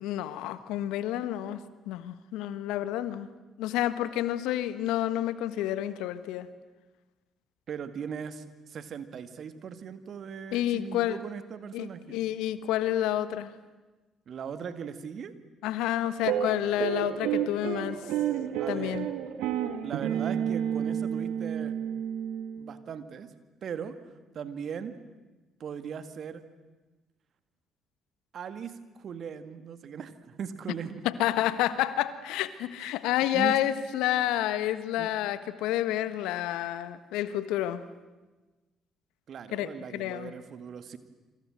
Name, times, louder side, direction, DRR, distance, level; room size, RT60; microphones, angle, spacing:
voice 1, 0.0-1.6 1.9-3.3 3.6-6.5 10.5-11.2 11.7-13.5 15.6-18.0 18.7-19.1 31.0-37.8 39.5-40.3, left 13 dB, 75° left, 14 dB, 1.4 m, -29 dB
voice 2, 7.7-12.2 14.3-15.3 18.6-19.1 19.8-21.7 22.6-23.3 23.6-24.0 24.3-25.0 25.6-26.5 28.3-31.0 32.8-32.9 33.3-33.6 35.0-35.1 39.3-41.0, right 7 dB, 55° right, 11 dB, 2.1 m, -39 dB
sound 1, 16.2-22.8, right 9 dB, 75° right, 1.9 m, -31 dB
27.5 x 26.0 x 7.8 m, 1.2 s
hypercardioid pair, 50°, 0 cm